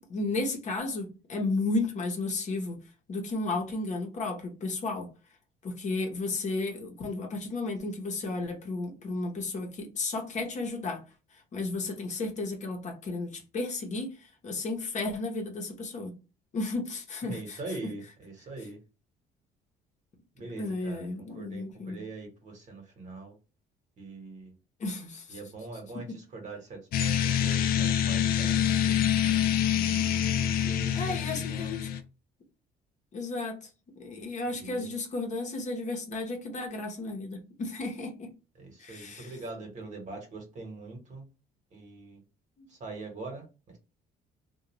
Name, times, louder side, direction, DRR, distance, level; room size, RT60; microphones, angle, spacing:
voice 1, 0.0-2.8 3.1-5.1 5.6-11.0 11.5-16.1 16.5-17.6 20.6-22.0 24.8-25.4 30.9-31.9 33.1-33.7 34.0-38.3 38.8-39.3 42.6-42.7, left 3 dB, 45° left, 0.8 m, -33 dB
voice 2, 17.2-18.8 20.3-23.4 24.0-24.5 25.3-29.5 30.6-32.0 34.6-34.9 38.6-41.2 41.7-42.2 42.7-43.5, right 2 dB, 45° right, 1.2 m, -43 dB
sound 1, 26.9-32.0, left 9 dB, 60° left, 0.4 m, -26 dB
2.4 x 2.3 x 3.0 m
cardioid pair, 110°, 17 cm